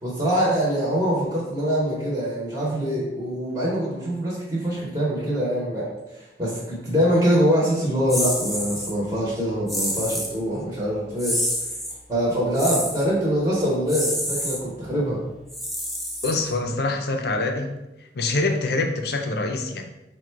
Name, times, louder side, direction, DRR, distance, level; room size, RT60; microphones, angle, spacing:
voice 1, 0.0-11.4 12.1-15.2, equal, 15° right, -6 dB, 0.8 m, -24 dB
sound 1, 8.1-8.9 9.7-10.4 11.2-12.0 12.6-13.1 13.9-14.6 15.5-16.7, equal, ahead, 0.3 m, -28 dB
voice 2, 16.2-17.7 18.1-19.8, left 2 dB, 60° left, 4 dB, 0.5 m, -25 dB
3.7 x 2.2 x 4.5 m, 0.97 s
head